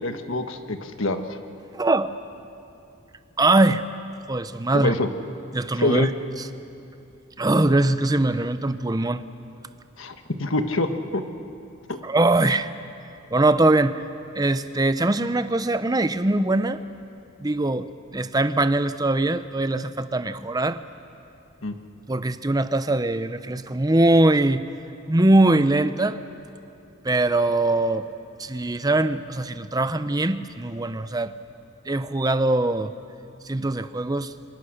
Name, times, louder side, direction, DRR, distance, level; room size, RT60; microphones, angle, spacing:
voice 1, 0.0-1.4 4.7-5.1 5.8-6.1 10.0-11.2 11.9-12.0 21.6-21.7, left 2 dB, 65° left, 7 dB, 1.4 m, -25 dB
voice 2, 1.7-2.1 3.4-3.8 4.3-4.9 5.5-6.1 6.4-6.5 7.4-9.2 12.0-12.7 13.3-14.0 14.4-16.8 17.4-17.9 18.1-20.8 22.1-24.6 25.1-26.2 27.0-28.1 28.4-31.3 31.9-32.9 33.5-34.3, right 2 dB, 20° right, 12 dB, 0.7 m, -21 dB
26.5 x 23.5 x 6.6 m, 2.7 s
head